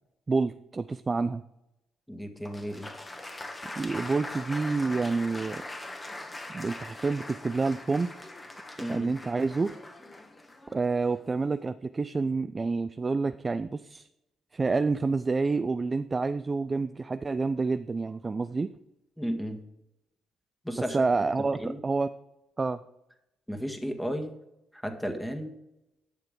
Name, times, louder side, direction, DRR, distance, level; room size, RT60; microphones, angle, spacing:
voice 1, 0.3-1.4 3.8-5.6 6.5-8.3 8.9-9.7 10.7-14.1 14.5-18.7 20.9-22.1 22.6-22.8, right 4 dB, 35° right, 11 dB, 0.4 m, -28 dB
voice 2, 2.1-2.9 8.8-9.1 19.2-19.6 20.6-21.0 21.6-21.8 23.5-24.4 24.7-25.5, equal, 5° left, 4 dB, 1.8 m, -33 dB
Applause, 2.5-11.4, left 2 dB, 25° left, 1.6 m, -42 dB
11.0 x 6.7 x 3.8 m, 0.88 s
hypercardioid pair, 50°, 0 cm